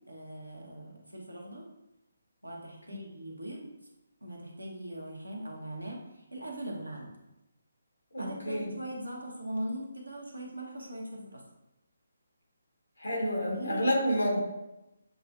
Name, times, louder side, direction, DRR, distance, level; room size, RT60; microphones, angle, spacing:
voice 1, 0.1-1.6 2.4-3.7 4.2-7.1 8.2-11.4 13.5-13.9, right 1 dB, 90° right, -1 dB, 1.0 m, -40 dB
voice 2, 8.1-8.7 13.0-14.4, equal, 70° left, -2 dB, 1.6 m, -29 dB
7.2 x 2.4 x 2.6 m, 0.94 s
figure-of-eight pair, 145°, 0 cm